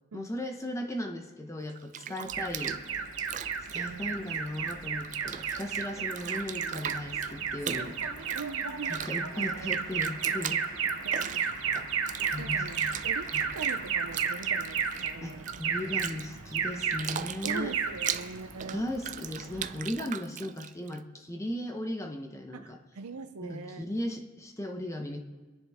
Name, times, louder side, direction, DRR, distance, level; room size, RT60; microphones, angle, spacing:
voice 1, 0.1-2.8 3.7-8.0 8.9-10.6 12.3-12.9 13.3-13.4 15.2-17.7 18.7-22.8 23.4-25.2, left 1 dB, 15° left, 4 dB, 0.9 m, -37 dB
Bathtub (filling or washing), 1.7-4.7 5.0-21.0, right 9 dB, 35° right, 0.4 m, -40 dB
Alarm, 2.3-19.9, right 6 dB, 65° right, 1.1 m, -33 dB
voice 2, 3.8-4.3 6.0-6.1 8.3-9.1 9.3-9.8 11.0-11.5 12.4-16.0 17.4-18.8 22.5-23.9, right 4 dB, 85° right, 8 dB, 0.6 m, -42 dB
25.5 x 10.5 x 3.6 m, 1.3 s
head